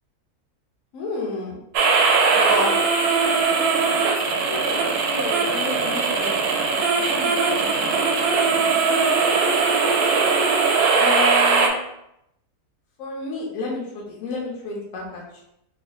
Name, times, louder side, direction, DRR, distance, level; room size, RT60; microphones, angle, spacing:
voice 1, 0.9-1.6 2.2-2.8 4.3-6.3 6.9-7.3 7.8-8.0 11.0-11.8 13.0-15.4, left 3 dB, 60° left, -3 dB, 1.2 m, -31 dB
sound 1, 1.7-11.7, right 4 dB, 80° right, 1.1 m, -20 dB
3.7 x 3.3 x 2.3 m, 0.80 s
omnidirectional pair, 1.6 m